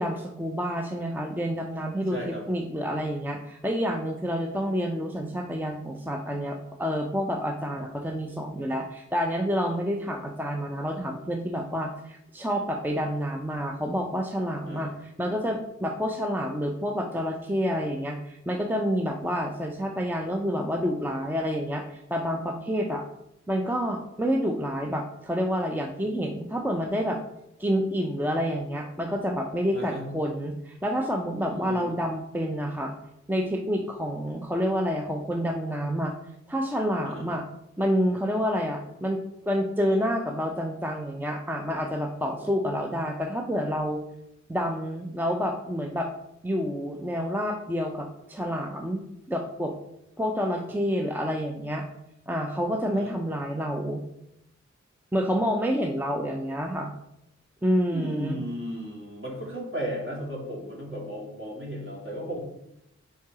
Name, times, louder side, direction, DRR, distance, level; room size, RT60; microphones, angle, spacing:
voice 1, 0.0-23.0 23.5-27.2 27.6-32.9 33.3-36.1 36.5-37.5 37.8-44.0 44.5-46.1 46.4-49.7 50.2-51.9 52.3-54.0 55.1-56.9 57.6-58.4, equal, 5° right, 2 dB, 0.6 m, -28 dB
voice 2, 2.1-2.4 14.7-14.9 29.7-30.1 31.4-31.8 37.0-37.2 52.9-53.1 57.9-62.4, equal, 45° right, -3 dB, 2.3 m, -35 dB
4.6 x 4.6 x 4.8 m, 0.82 s
wide cardioid pair, 50°, 30 cm